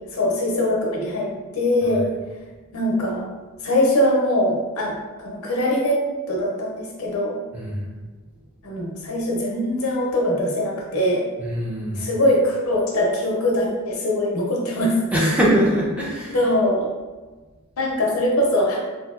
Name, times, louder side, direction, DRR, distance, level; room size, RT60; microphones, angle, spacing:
voice 1, 0.1-2.1 2.7-3.2 3.6-6.0 6.3-7.4 8.6-11.3 12.0-15.0 16.3-16.9 17.8-18.8, left 1 dB, 75° left, -1 dB, 0.6 m, -22 dB
voice 2, 7.5-7.8 11.4-12.1 15.1-16.4, equal, 5° right, -5 dB, 0.5 m, -22 dB
2.7 x 2.7 x 2.4 m, 1.3 s
head